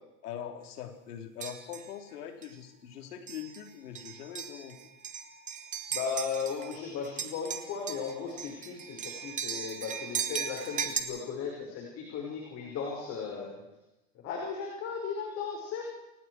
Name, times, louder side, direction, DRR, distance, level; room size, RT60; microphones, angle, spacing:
voice 1, 0.2-4.9, left 9 dB, 85° left, 4 dB, 4.4 m, -42 dB
sound 1, 1.4-1.9 2.4-2.6 3.3-3.6 3.9-6.8 7.0-11.0, right 7 dB, 15° right, 1.7 m, -37 dB
voice 2, 5.9-13.6 14.2-15.8, left 6 dB, 30° left, -1 dB, 5.3 m, -36 dB
29.0 x 23.0 x 4.8 m, 0.95 s
supercardioid pair, 160°, 45 cm